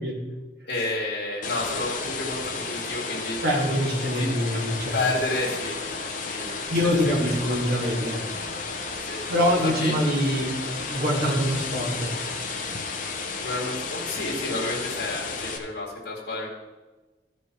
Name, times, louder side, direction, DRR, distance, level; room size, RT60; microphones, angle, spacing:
voice 1, 0.7-3.4 4.1-4.3 4.9-5.8 6.1-6.7 7.1-7.6 9.0-9.3 9.8-10.0 13.4-16.5, left 2 dB, 70° left, -4 dB, 2.1 m, -30 dB
sound 1, 1.4-15.6, left 4 dB, 50° left, 0.9 m, -33 dB
voice 2, 3.4-4.9 6.7-8.2 9.3-12.1, equal, 60° right, -4 dB, 2.3 m, -24 dB
14.0 x 5.2 x 4.6 m, 1.2 s
head